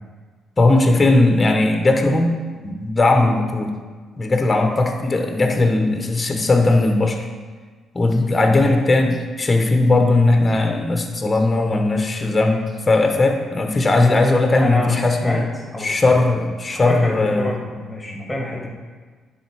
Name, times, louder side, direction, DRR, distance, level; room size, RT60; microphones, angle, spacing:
voice 1, 0.6-2.3 2.6-3.7 4.2-7.2 7.9-12.6 12.9-15.4 15.8-17.5, left 2 dB, 25° left, 3 dB, 0.9 m, -18 dB
voice 2, 8.5-8.8 14.6-15.4 15.7-15.9 16.8-18.7, left 2 dB, 5° left, -1 dB, 1.7 m, -26 dB
10.0 x 3.8 x 4.7 m, 1.4 s
cardioid pair, 90°, 0 cm